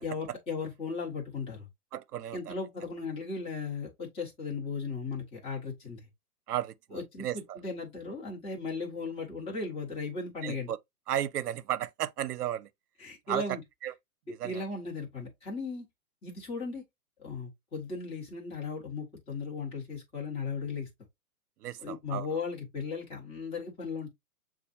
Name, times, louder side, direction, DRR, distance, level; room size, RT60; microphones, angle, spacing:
voice 1, 0.0-1.7 2.3-6.1 6.9-10.7 13.0-13.6 14.4-15.8 16.2-16.8 17.2-20.9 21.8-24.1, left 4 dB, 10° left, 1.3 m, -36 dB
voice 2, 1.9-2.5 6.5-7.6 10.4-10.8 11.1-12.7 13.3-13.4 13.8-13.9 14.4-14.6 21.6-22.3, right 11 dB, 80° right, 0.7 m, -34 dB
7.0 x 2.5 x 2.7 m
hypercardioid pair, 150°, 46 cm